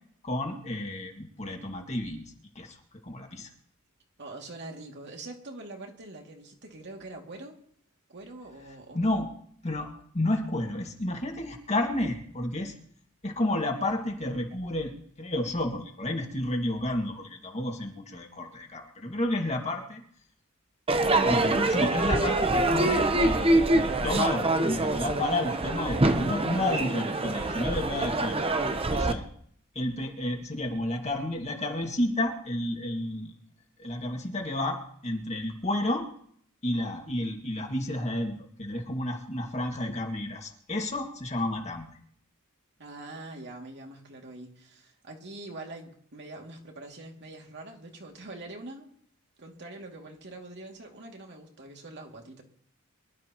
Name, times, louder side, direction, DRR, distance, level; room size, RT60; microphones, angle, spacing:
voice 1, 0.2-2.8 3.0-3.5 8.6-9.3 9.6-9.9 10.1-12.7 13.2-14.9 15.2-20.0 21.2-28.5 28.9-29.3 29.8-33.3 33.8-36.1 36.6-41.9, left 1 dB, 30° left, 2 dB, 2.0 m, -31 dB
voice 2, 4.2-7.6 8.1-9.3 42.8-48.9 49.4-52.4, right 2 dB, 55° right, 1 dB, 2.5 m, -44 dB
Crowd / Fireworks, 20.9-29.1, right 2 dB, 25° right, 0.9 m, -25 dB
24.0 x 12.5 x 3.0 m, 0.63 s
head